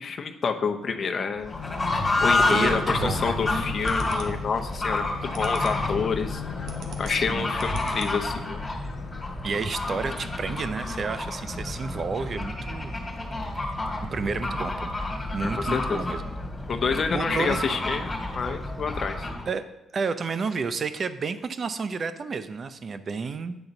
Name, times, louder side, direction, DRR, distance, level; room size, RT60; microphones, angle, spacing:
voice 1, 0.0-1.5 2.2-6.4 7.0-8.6 15.4-16.1 16.7-18.1 18.3-19.3, left 5 dB, 45° left, 5 dB, 0.7 m, -28 dB
Fowl / Bird, 1.4-19.5, left 2 dB, 15° left, 2.3 m, -29 dB
sound 1, 1.5-9.4 10.0-11.3 11.9-12.0, left 8 dB, 90° left, 0.5 m, -39 dB
voice 2, 2.5-3.4 7.1-7.5 9.4-12.9 14.1-14.9 15.3-16.2 17.1-17.7 19.5-19.6 19.9-23.6, right 5 dB, 45° right, 11 dB, 0.6 m, -31 dB
sound 2, 3.8-4.5 5.0-5.9 6.2-8.4, right 5 dB, 75° right, 1.0 m, -43 dB
8.9 x 3.9 x 5.9 m, 0.94 s
cardioid pair, 90°, 0 cm